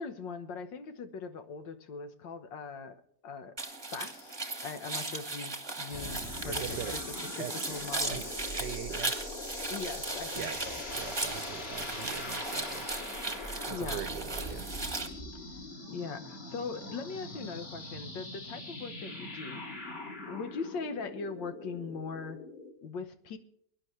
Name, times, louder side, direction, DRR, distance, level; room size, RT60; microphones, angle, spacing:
voice 1, 0.0-4.4 4.6-7.0 7.4-8.2 9.7-10.8 13.4-14.0 15.9-20.0 20.3-22.4 22.8-23.4, left 5 dB, 85° left, 1.9 m, -40 dB
sound 1, 3.6-15.1, right 3 dB, 15° right, 1.1 m, -37 dB
sound 2, 5.9-22.7, left 1 dB, 35° left, 2.5 m, -42 dB
voice 2, 6.5-7.0 7.4-9.4 10.3-12.9 13.6-14.9, right 13 dB, 75° right, 1.2 m, -43 dB
23.0 x 10.5 x 3.2 m
omnidirectional pair, 1.9 m